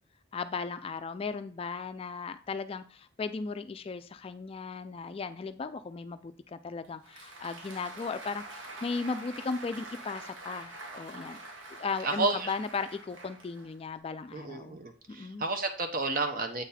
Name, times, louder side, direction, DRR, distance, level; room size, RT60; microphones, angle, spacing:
voice 1, 0.3-11.4 11.8-14.8 15.1-15.4, left 4 dB, 30° left, 11 dB, 0.3 m, -36 dB
Applause, 6.8-14.0, right 2 dB, 80° right, 1.3 m, -46 dB
voice 2, 12.0-12.5 14.3-16.6, right 3 dB, 45° right, 6 dB, 0.9 m, -31 dB
8.0 x 4.0 x 4.2 m, 0.42 s
head